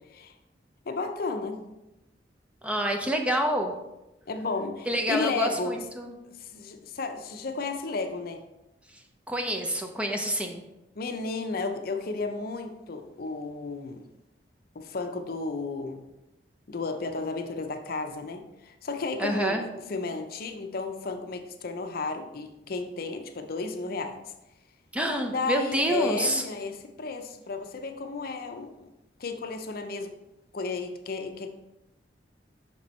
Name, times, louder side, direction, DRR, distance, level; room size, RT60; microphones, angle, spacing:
voice 1, 0.9-1.6 4.3-5.8 6.4-8.4 11.0-14.0 14.7-16.0 16.7-24.2 25.3-28.9 29.2-30.1 30.5-31.5, left 3 dB, 55° left, 6 dB, 0.6 m, -33 dB
voice 2, 2.6-3.7 4.9-6.1 9.3-10.6 19.2-19.6 24.9-26.4, equal, 5° right, 3 dB, 0.5 m, -27 dB
6.0 x 4.4 x 4.3 m, 0.95 s
head